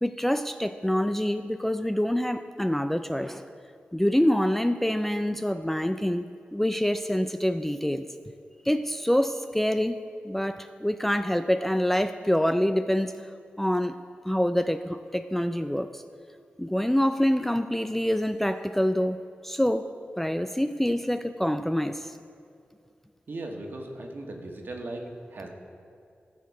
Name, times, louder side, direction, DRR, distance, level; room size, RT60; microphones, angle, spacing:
voice 1, 0.0-3.4 3.9-6.2 6.5-8.1 8.7-10.0 10.2-13.1 13.6-14.0 14.2-16.0 16.6-19.2 19.4-19.9 20.2-22.1, equal, 5° left, 9 dB, 0.3 m, -26 dB
voice 2, 23.3-25.0 25.3-25.5, right 2 dB, 60° right, 1 dB, 1.4 m, -37 dB
15.0 x 6.5 x 4.7 m, 2.4 s
wide cardioid pair, 85°, 4 cm